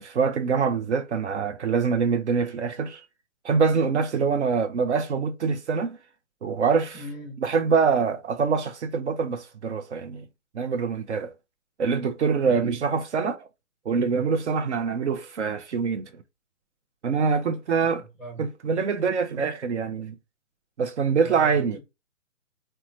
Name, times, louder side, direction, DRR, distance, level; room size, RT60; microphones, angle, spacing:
voice 1, 0.0-3.0 3.4-6.0 6.4-7.0 7.4-10.2 10.5-11.3 11.8-13.5 13.9-16.2 17.0-18.0 18.4-20.1 20.8-21.8, right 5 dB, 60° right, 0.5 m, -25 dB
voice 2, 6.9-7.4 12.4-12.7 17.5-18.5 21.2-21.8, equal, 5° left, 0.7 m, -40 dB
3.0 x 2.2 x 2.4 m
hypercardioid pair, 155°, 40 cm